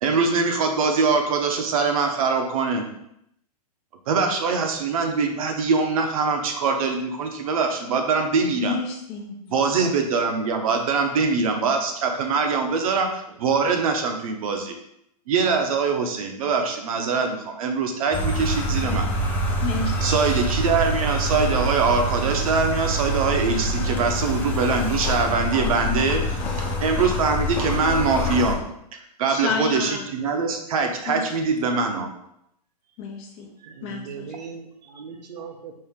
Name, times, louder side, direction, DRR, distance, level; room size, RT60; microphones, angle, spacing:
voice 1, 0.0-2.8 4.1-8.7 9.5-14.7 15.3-19.1 20.0-26.4 26.8-28.6 29.2-32.1, right 4 dB, 60° right, 4 dB, 0.8 m, -23 dB
voice 2, 8.6-9.6 19.6-20.2 26.4-26.8 29.3-30.0 31.0-31.3 33.0-33.5 33.8-34.3, left 4 dB, 30° left, 1 dB, 0.8 m, -30 dB
voice 3, 13.3-13.6 33.6-35.8, right 6 dB, 90° right, 4 dB, 0.8 m, -39 dB
sound 1, 18.1-28.5, equal, 10° left, 0.4 m, -26 dB
4.6 x 2.8 x 3.5 m, 0.77 s
hypercardioid pair, 150°, 21 cm